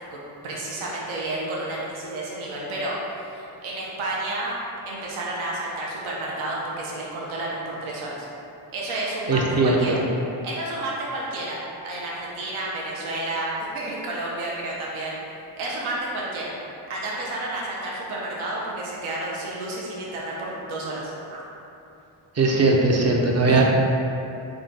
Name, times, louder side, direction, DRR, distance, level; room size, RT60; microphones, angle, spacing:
voice 1, 0.4-4.6 4.9-8.3 8.7-10.0 10.4-15.2 15.6-16.5 16.9-21.4 23.5-23.6, right 2 dB, 75° right, -5 dB, 0.8 m, -31 dB
voice 2, 9.3-10.0 22.4-23.6, right 3 dB, 30° right, 0 dB, 0.6 m, -19 dB
3.7 x 2.3 x 3.8 m, 2.8 s
cardioid pair, 60°, 49 cm